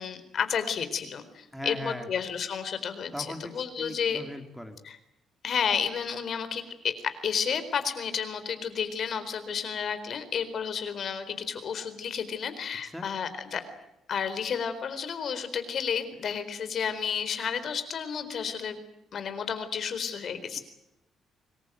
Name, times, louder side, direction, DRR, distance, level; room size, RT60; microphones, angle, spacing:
voice 1, 0.0-4.2 4.8-5.0 5.4-13.6 14.1-18.8 19.1-20.6, left 7 dB, 50° left, 11 dB, 4.1 m, -31 dB
voice 2, 1.5-2.1 3.1-4.8 12.8-13.1, left 1 dB, ahead, 5 dB, 2.6 m, -39 dB
26.0 x 21.5 x 9.2 m, 0.90 s
cardioid pair, 135°, 0 cm